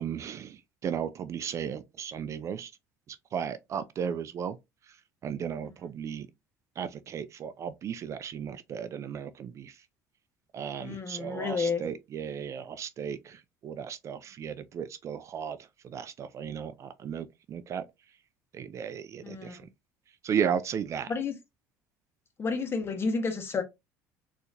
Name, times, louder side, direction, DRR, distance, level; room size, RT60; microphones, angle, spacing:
voice 1, 0.0-2.7 3.1-4.6 4.8-6.3 6.8-9.9 10.5-17.8 18.5-19.7 20.2-21.1, right 8 dB, 40° right, 0.4 m, -35 dB
voice 2, 10.8-11.8 19.2-19.6 21.1-21.3 22.4-23.6, left 4 dB, 35° left, 1.2 m, -30 dB
4.0 x 2.8 x 2.5 m
supercardioid pair, 90°, 7 cm